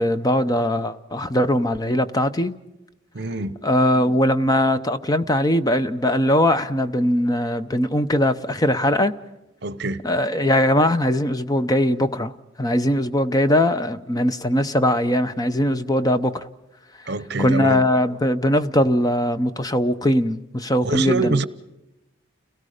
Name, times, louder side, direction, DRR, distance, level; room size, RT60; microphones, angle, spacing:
voice 1, 0.0-2.6 3.6-9.1 10.0-12.3 12.6-16.5 17.0-17.1 17.4-21.4, left 1 dB, 20° left, 0.6 m, -20 dB
voice 2, 3.1-3.6 9.6-10.0 17.1-17.8 20.8-21.4, right 3 dB, 55° right, 0.9 m, -24 dB
30.0 x 17.5 x 5.0 m
head